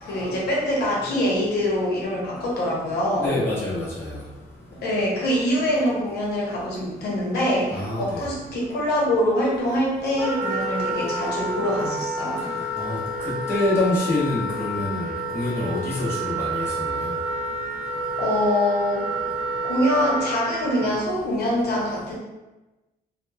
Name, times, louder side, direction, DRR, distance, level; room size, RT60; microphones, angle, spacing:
voice 1, 0.0-3.3 4.8-12.4 18.2-19.0 19.6-22.2, left 1 dB, 70° left, -5 dB, 0.8 m, -24 dB
voice 2, 3.2-4.1 7.7-8.0 12.8-15.1 15.3-16.6, left 1 dB, 15° left, -8 dB, 0.8 m, -25 dB
Wind instrument woodwind instrument, 10.2-20.8, right 1 dB, 5° right, 0.4 m, -29 dB
2.9 x 2.1 x 2.2 m, 1.1 s
cardioid pair, 150°, 17 cm